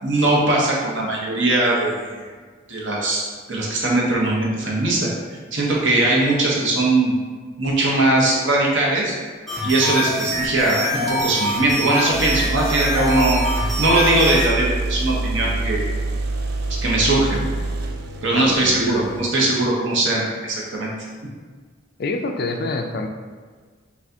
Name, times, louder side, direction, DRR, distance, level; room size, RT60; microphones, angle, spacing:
voice 1, 0.0-2.2 2.7-5.1 5.5-7.1 7.6-9.1 9.6-13.4 13.8-15.8 16.7-17.5 18.2-20.9, right 2 dB, 70° right, -3 dB, 0.9 m, -20 dB
sound 1, 9.5-14.5, equal, ahead, 0.9 m, -25 dB
sound 2, 11.1-11.2 12.1-19.2, right 2 dB, 50° right, 0.3 m, -26 dB
voice 2, 18.3-19.0 19.4-19.6 22.0-23.1, left 3 dB, 50° left, 4 dB, 0.4 m, -27 dB
5.7 x 2.4 x 2.7 m, 1.5 s
head